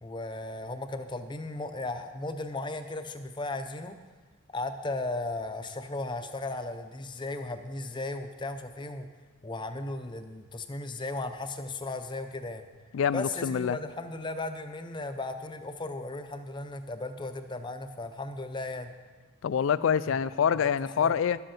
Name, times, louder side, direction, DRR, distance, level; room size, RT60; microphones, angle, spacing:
voice 1, 0.0-4.0 4.5-9.1 9.4-12.6 13.1-18.9 21.0-21.2, left 2 dB, 25° left, 8 dB, 0.6 m, -36 dB
voice 2, 12.9-13.8 19.4-21.4, left 7 dB, 70° left, 17 dB, 0.3 m, -26 dB
12.0 x 7.7 x 5.8 m, 1.4 s
head